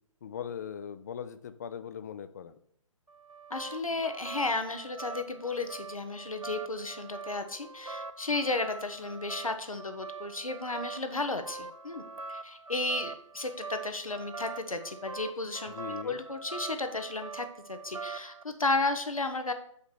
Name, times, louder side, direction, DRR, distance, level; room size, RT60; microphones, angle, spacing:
voice 1, 0.2-2.6 15.7-16.2, left 8 dB, 30° left, 12 dB, 0.4 m, -40 dB
sound 1, 3.1-18.4, right 4 dB, 85° right, 0.5 m, -43 dB
voice 2, 3.5-12.0 12.3-15.7 16.0-19.5, left 3 dB, 80° left, 7 dB, 1.0 m, -33 dB
6.9 x 5.1 x 4.5 m, 0.66 s
figure-of-eight pair, 135°, 17 cm